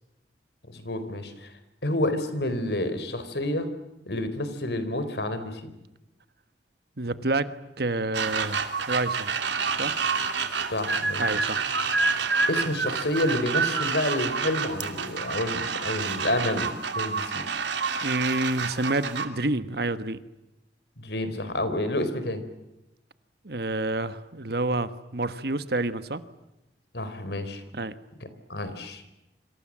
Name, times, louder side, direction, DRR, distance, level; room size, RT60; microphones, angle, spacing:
voice 1, 0.7-1.5 1.8-3.7 4.1-5.7 10.7-11.2 12.5-17.4 21.0-22.4 26.9-27.6 28.2-29.0, left 1 dB, 70° left, 11 dB, 4.1 m, -29 dB
voice 2, 7.0-7.5 7.8-9.3 9.8-9.9 11.2-11.6 18.0-20.2 23.4-26.2 27.7-27.9, right 2 dB, 60° right, 12 dB, 1.4 m, -28 dB
sound 1, 8.1-19.3, right 5 dB, 85° right, 2.7 m, -28 dB
28.5 x 26.5 x 7.5 m, 0.93 s
head